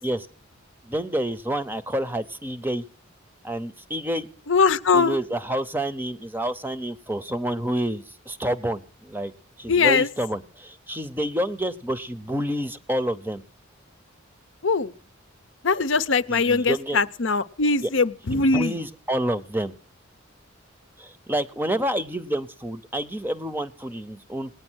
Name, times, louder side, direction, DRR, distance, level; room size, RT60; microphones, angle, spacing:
voice 1, 0.8-2.8 3.4-4.3 4.9-9.3 9.6-13.4 16.3-17.0 17.8-17.9 18.3-19.7 21.0-24.5, right 1 dB, 10° right, 13 dB, 0.7 m, -28 dB
voice 2, 4.5-5.2 9.7-10.1 14.6-14.9 15.6-18.7, left 4 dB, 65° left, 14 dB, 0.7 m, -21 dB
19.0 x 9.4 x 6.2 m, 0.42 s
head